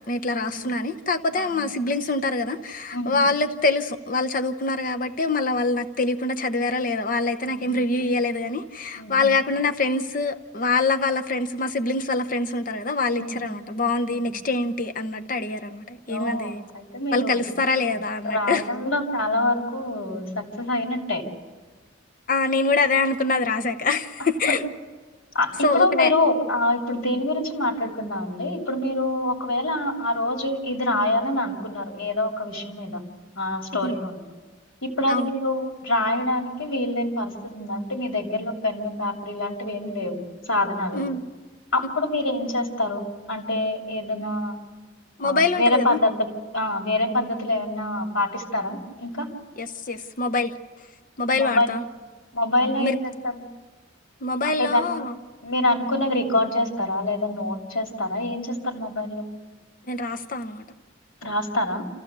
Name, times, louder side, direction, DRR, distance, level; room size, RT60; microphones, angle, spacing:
voice 1, 0.1-16.6 17.1-18.6 22.3-24.6 25.6-26.1 33.8-34.0 35.1-35.3 40.9-41.2 45.2-46.0 49.6-50.5 51.2-51.8 52.6-53.0 54.2-55.2 59.9-60.6, left 3 dB, 45° left, 0.8 m, -24 dB
voice 2, 9.0-9.3 13.2-13.4 14.1-14.2 16.1-17.5 18.3-21.2 24.5-24.6 25.3-33.0 33.4-34.2 34.8-41.0 41.7-44.6 45.2-49.3 51.4-51.7 52.3-53.4 54.4-54.9 55.4-59.3 61.2-61.9, left 1 dB, 85° left, 3.1 m, -26 dB
27.0 x 15.0 x 6.8 m
head